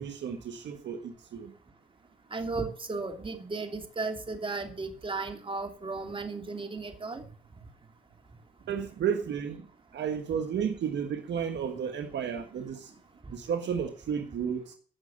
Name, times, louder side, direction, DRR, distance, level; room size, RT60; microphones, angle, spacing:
voice 1, 0.0-1.5 8.7-9.7 9.9-12.9 13.3-14.8, right 7 dB, 65° right, 1.5 m, -32 dB
voice 2, 2.3-7.2, right 3 dB, 25° right, 2.9 m, -35 dB
15.5 x 6.4 x 6.5 m
cardioid pair, 90°, 20 cm